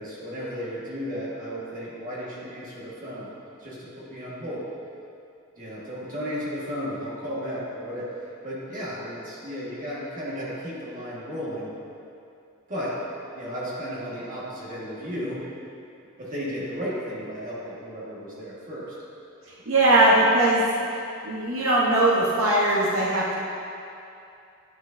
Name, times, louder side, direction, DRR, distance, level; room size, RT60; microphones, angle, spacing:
voice 1, 0.0-3.3 3.6-4.7 5.6-8.1 8.4-11.7 12.7-13.0 13.3-15.4 16.2-19.0, equal, 40° right, -7 dB, 1.5 m, -34 dB
voice 2, 19.7-20.6 21.2-23.3, right 1 dB, 70° right, -5 dB, 1.0 m, -20 dB
10.5 x 6.1 x 2.6 m, 2.6 s
head